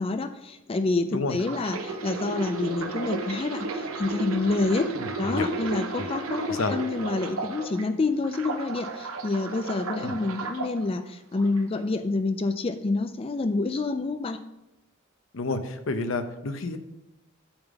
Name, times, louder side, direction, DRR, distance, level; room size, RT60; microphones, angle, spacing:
voice 1, 0.0-4.9 5.2-14.4, left 3 dB, 25° left, 9 dB, 0.4 m, -28 dB
sound 1, 1.3-7.8 8.2-10.7 11.4-11.6, right 3 dB, 85° right, 0.8 m, -33 dB
voice 2, 4.9-5.5 6.0-6.1 6.5-6.8 10.0-10.2 15.3-16.8, left 3 dB, 65° left, 9 dB, 0.7 m, -30 dB
8.8 x 3.7 x 5.9 m, 0.91 s
head